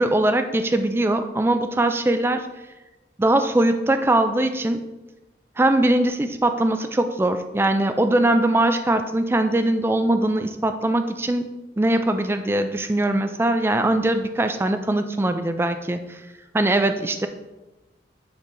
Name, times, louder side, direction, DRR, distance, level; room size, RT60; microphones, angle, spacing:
voice 1, 0.0-2.4 3.2-4.8 5.6-11.5 11.8-16.0 16.5-17.3, right 1 dB, 15° right, 8 dB, 0.3 m, -21 dB
9.8 x 4.4 x 2.7 m, 1.1 s
head